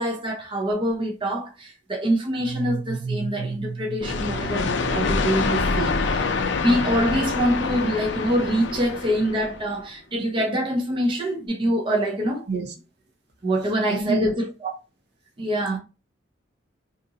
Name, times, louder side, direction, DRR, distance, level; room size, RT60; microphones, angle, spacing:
voice 1, 0.0-6.3 6.6-12.5 13.4-14.7 15.4-15.8, equal, 25° right, 0.5 m, -25 dB
sound 1, 2.4-6.1, right 5 dB, 85° right, 0.3 m, -33 dB
sound 2, 4.0-9.7, left 4 dB, 65° left, 0.4 m, -26 dB
voice 2, 13.9-14.3 15.7-15.8, right 2 dB, 65° right, 0.8 m, -26 dB
2.8 x 2.5 x 3.8 m
head